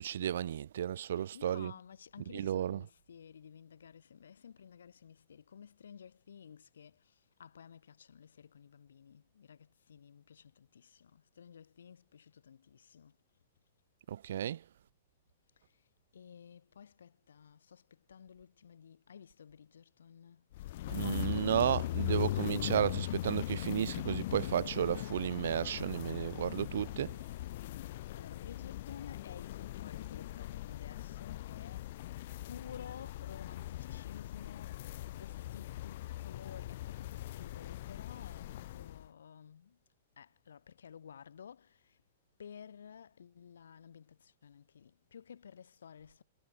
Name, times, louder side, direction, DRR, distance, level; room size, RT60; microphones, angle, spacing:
voice 1, 0.0-1.7 2.3-2.8 14.1-14.6 20.9-27.2, right 10 dB, 70° right, 0.5 m, -33 dB
voice 2, 1.1-13.2 15.6-15.8 16.1-20.5 28.1-31.9 32.5-34.8 35.1-39.8 40.2-42.0 42.4-46.2, left 7 dB, 80° left, 4.6 m, -53 dB
sound 1, 20.5-39.1, left 15 dB, 60° left, 1.4 m, -40 dB
hypercardioid pair, 125°, 0 cm